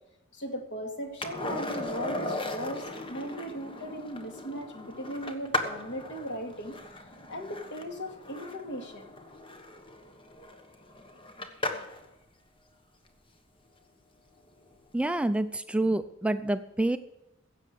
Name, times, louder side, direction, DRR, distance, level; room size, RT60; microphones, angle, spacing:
voice 1, 0.3-6.8 7.3-9.1, equal, 60° left, 4 dB, 2.4 m, -38 dB
Skateboard, 1.2-12.1 14.6-14.7, left 2 dB, 25° left, 1.3 m, -37 dB
voice 2, 14.9-17.0, right 1 dB, 5° right, 10 dB, 0.4 m, -27 dB
15.5 x 7.4 x 6.9 m, 0.90 s
head